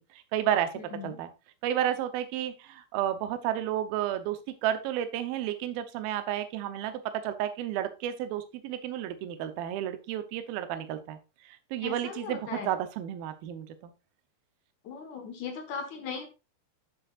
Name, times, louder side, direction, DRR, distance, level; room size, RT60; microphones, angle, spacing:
voice 1, 0.1-0.7 1.0-1.3 1.6-11.2 11.5-13.7, right 11 dB, 75° right, 10 dB, 2.3 m, -31 dB
voice 2, 0.8-1.2 11.8-12.7 14.8-16.3, left 6 dB, 60° left, 4 dB, 2.1 m, -38 dB
12.0 x 6.4 x 2.5 m, 0.29 s
omnidirectional pair, 5.2 m